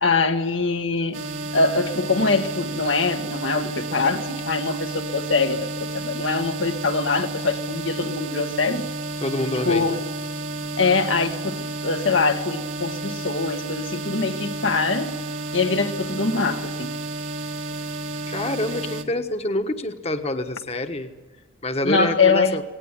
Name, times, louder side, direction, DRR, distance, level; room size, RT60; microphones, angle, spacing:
voice 1, 0.0-1.2 1.5-8.9 9.7-10.0 10.8-15.2 15.5-17.0 21.8-22.6, left 4 dB, 80° left, 1.8 m, -23 dB
sound 1, 1.1-19.0, right 2 dB, 80° right, 2.3 m, -31 dB
voice 2, 9.2-10.0 18.3-21.1 21.6-22.6, left 1 dB, 35° left, 1.3 m, -26 dB
19.5 x 18.0 x 10.0 m
head